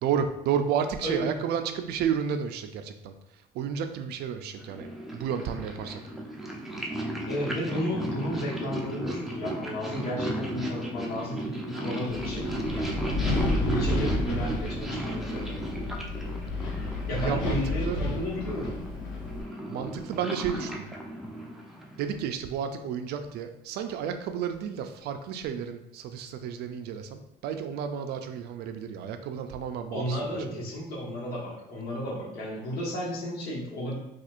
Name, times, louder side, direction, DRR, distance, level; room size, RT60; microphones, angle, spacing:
voice 1, 0.0-4.9 5.1-6.0 17.2-18.0 19.7-20.9 22.0-30.6, right 8 dB, 75° right, 8 dB, 0.4 m, -32 dB
voice 2, 1.0-1.4 7.2-16.0 17.1-18.8 29.9-34.0, equal, 70° left, -4 dB, 1.3 m, -33 dB
Purr, 4.6-22.3, right 1 dB, ahead, 0.5 m, -35 dB
Wind, 12.1-19.4, left 2 dB, 90° left, 0.7 m, -31 dB
4.3 x 2.4 x 2.5 m, 0.85 s
cardioid pair, 110°, 17 cm